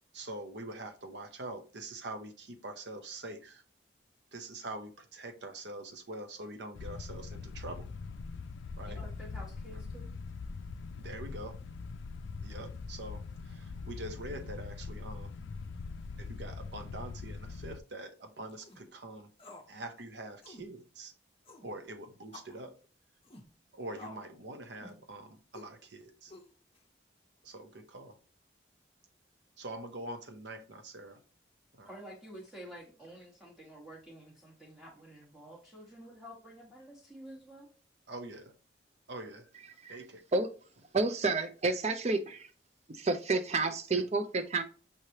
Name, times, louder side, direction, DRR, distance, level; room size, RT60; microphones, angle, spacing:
voice 1, 0.1-3.6 4.3-7.9 8.8-9.0 11.0-11.6 12.4-15.3 16.2-19.3 19.7-21.1 21.6-22.8 23.7-26.3 27.4-28.2 29.6-31.2 31.7-31.9 38.1-38.6 39.1-39.5 39.9-40.2 43.9-44.0, right 2 dB, 70° right, 0.8 m, -44 dB
sound 1, 6.7-17.8, left 4 dB, 85° left, 0.3 m, -42 dB
voice 2, 8.9-10.1 31.8-37.7, right 1 dB, ahead, 1.2 m, -50 dB
sound 2, 18.5-18.8 19.4-19.7 20.0-20.1 20.4-20.7 21.4-21.7 22.3-22.6 23.2-23.5 24.0-24.3 24.8-25.1 25.5-25.7 26.3-26.8, left 2 dB, 30° left, 0.7 m, -51 dB
voice 3, 40.9-42.5 42.9-44.6, right 3 dB, 35° right, 0.5 m, -30 dB
5.6 x 3.2 x 2.8 m
head